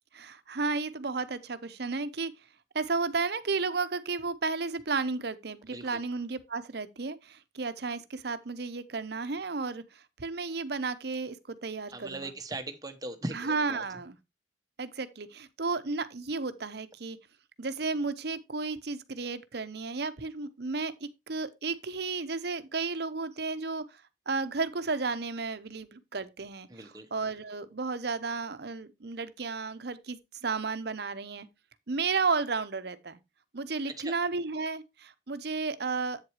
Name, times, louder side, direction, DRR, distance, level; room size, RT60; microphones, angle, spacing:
voice 1, 0.1-2.3 2.7-12.3 13.3-14.2 14.8-17.2 17.6-31.5 31.9-33.2 33.5-36.2, right 4 dB, 60° right, 0.8 m, -33 dB
voice 2, 11.9-13.8 26.7-27.1 33.9-34.1, right 2 dB, 20° right, 1.0 m, -39 dB
8.3 x 7.8 x 3.1 m
head